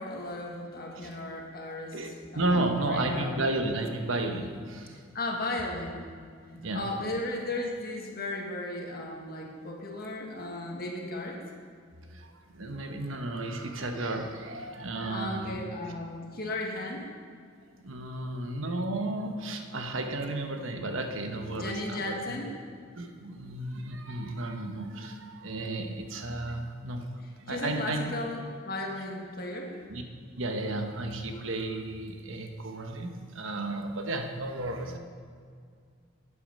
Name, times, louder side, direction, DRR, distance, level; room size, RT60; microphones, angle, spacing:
voice 1, 0.0-2.1 2.3-3.3 5.1-6.1 6.7-11.4 15.1-17.1 21.5-22.6 27.5-29.7 34.8-35.0, left 1 dB, 50° left, 0 dB, 1.6 m, -35 dB
voice 2, 1.9-5.0 6.5-6.9 12.1-15.6 17.8-22.2 22.9-27.0 27.4-28.1 29.9-30.0 30.4-35.0, right 2 dB, 75° right, 5 dB, 1.1 m, -33 dB
12.0 x 8.5 x 5.4 m, 2.1 s
head